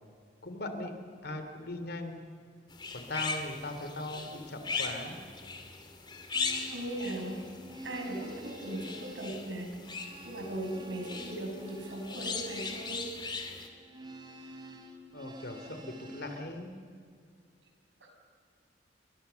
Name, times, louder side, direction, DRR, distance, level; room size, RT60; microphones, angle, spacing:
voice 1, 0.4-0.9 1.2-2.3 2.9-5.2 15.1-16.7, left 2 dB, 60° left, 7 dB, 3.1 m, -39 dB
sound 1, 2.7-13.7, left 4 dB, 25° left, 2.5 m, -39 dB
sound 2, 6.2-16.5, right 1 dB, 25° right, 3.3 m, -49 dB
voice 2, 6.7-7.4 7.8-9.7 10.2-13.0, right 1 dB, 85° right, 2 dB, 6.3 m, -38 dB
29.5 x 23.0 x 7.0 m, 2.1 s
head